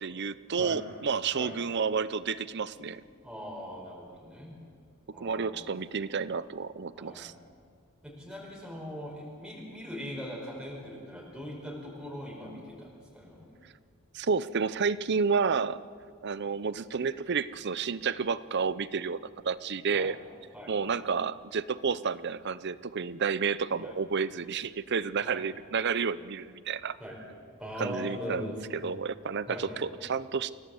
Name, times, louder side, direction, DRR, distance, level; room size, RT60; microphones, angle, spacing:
voice 1, 0.0-3.0 5.2-7.3 14.1-15.8 16.2-20.2 20.7-27.0 27.8-30.5, right 5 dB, 55° right, 16 dB, 0.6 m, -30 dB
voice 2, 3.2-4.5 5.1-5.7 6.9-7.3 8.0-13.5 19.9-20.1 20.5-20.9 23.8-23.9 25.2-25.4 27.0-27.2 27.6-28.6 29.5-29.8, equal, 5° right, -3 dB, 4.8 m, -41 dB
27.5 x 17.5 x 7.8 m, 2.3 s
head